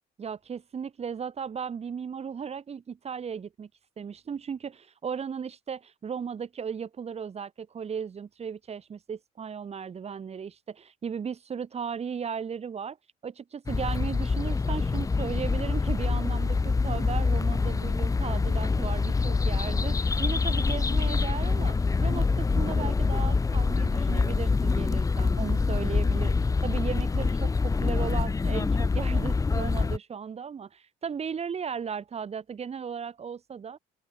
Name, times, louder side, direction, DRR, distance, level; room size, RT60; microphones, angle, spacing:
voice 1, 0.2-3.7 4.0-13.0 13.2-26.3 26.6-33.8, right 6 dB, 40° right, 6.4 m, -36 dB
sound 1, 13.7-30.0, left 4 dB, 20° left, 1.1 m, -25 dB
open air
cardioid pair, 110°, 17 cm